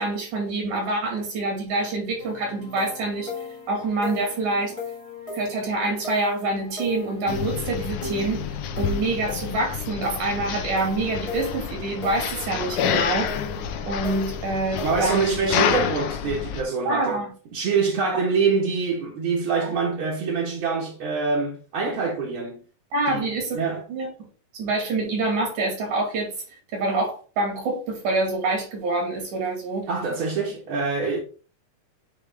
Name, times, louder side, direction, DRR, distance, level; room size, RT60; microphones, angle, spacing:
voice 1, 0.0-3.3 3.7-4.7 5.3-8.4 8.8-13.4 13.9-15.3 16.9-17.3 19.6-19.7 22.9-23.6 23.9-24.1 24.5-26.3 26.7-29.9, right 2 dB, 75° right, 3.6 m, -26 dB
sound 1, 2.2-15.2, left 2 dB, 45° left, 0.4 m, -37 dB
sound 2, 7.3-16.6, left 8 dB, 85° left, 2.2 m, -29 dB
voice 2, 14.8-17.2 17.5-22.6 23.1-23.3 23.5-23.8 29.9-31.2, right 4 dB, 55° right, 1.8 m, -25 dB
9.0 x 3.3 x 3.5 m
omnidirectional pair, 3.5 m